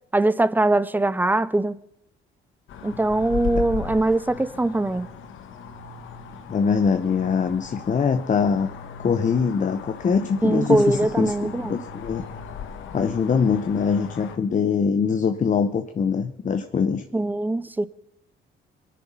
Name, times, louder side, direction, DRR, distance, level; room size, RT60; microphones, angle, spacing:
voice 1, 0.1-1.8 2.8-5.1 10.4-11.8 17.1-17.9, right 2 dB, 10° right, 0.6 m, -22 dB
sound 1, 2.7-14.4, left 6 dB, 80° left, 1.5 m, -37 dB
voice 2, 6.5-8.7 9.0-12.2 12.9-17.0, left 6 dB, 40° left, 0.9 m, -23 dB
23.0 x 10.0 x 5.6 m
cardioid pair, 90°, 20 cm